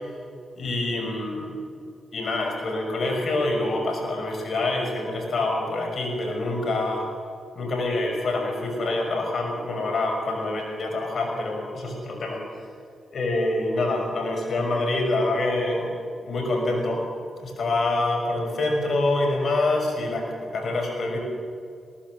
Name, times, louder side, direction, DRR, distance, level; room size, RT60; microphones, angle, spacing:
voice 1, 0.6-1.6 2.1-7.1 7.5-12.4 13.1-15.9 16.2-17.0 17.4-20.2 20.5-21.2, left 2 dB, 65° left, 2 dB, 6.3 m, -26 dB
20.5 x 18.0 x 7.9 m, 2.4 s
supercardioid pair, 45°, 0 cm